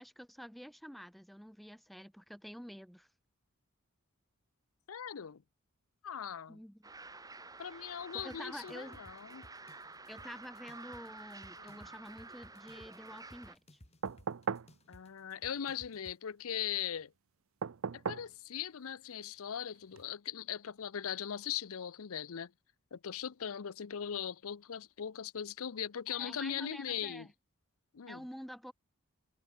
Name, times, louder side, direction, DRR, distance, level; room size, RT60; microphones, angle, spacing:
voice 1, 0.0-3.1 6.5-6.9 8.1-9.0 10.1-13.8 26.1-27.3 28.1-28.7, equal, ahead, 0.7 m, -48 dB
voice 2, 4.9-5.4 6.0-6.6 7.6-9.5 11.6-11.8 14.9-17.1 17.9-22.5 22.9-27.3 27.9-28.2, left 8 dB, 75° left, 0.6 m, -40 dB
sound 1, 6.8-13.5, right 3 dB, 15° right, 2.3 m, -51 dB
sound 2, 8.2-16.2, left 1 dB, 30° left, 3.4 m, -59 dB
sound 3, 14.0-14.7 17.6-18.3 19.9-20.0, right 6 dB, 65° right, 0.5 m, -37 dB
head